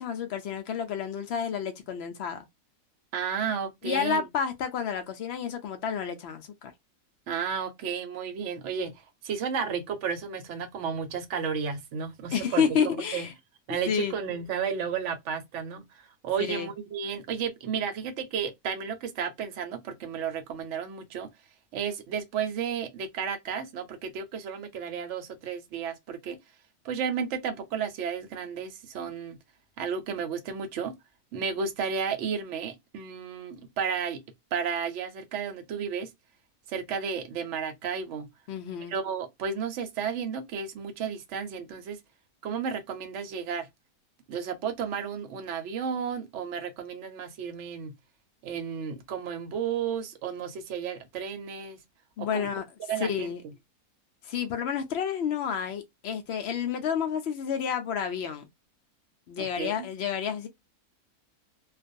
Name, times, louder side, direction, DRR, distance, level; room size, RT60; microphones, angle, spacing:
voice 1, 0.0-2.4 3.8-6.7 12.3-13.3 13.9-14.2 16.5-16.7 38.5-38.9 52.2-52.6 53.0-53.4 54.2-58.5 59.3-60.5, left 7 dB, 80° left, 0.5 m, -30 dB
voice 2, 3.1-4.2 7.3-12.6 13.1-13.3 13.7-21.3 21.7-26.4 26.8-29.4 29.8-30.9 31.3-34.2 34.5-36.1 36.7-38.3 38.9-42.0 42.4-43.7 44.3-47.9 48.4-51.8 52.2-52.5 52.9-53.3 59.4-59.9, right 6 dB, 60° right, 0.9 m, -33 dB
2.5 x 2.2 x 2.5 m
omnidirectional pair, 1.7 m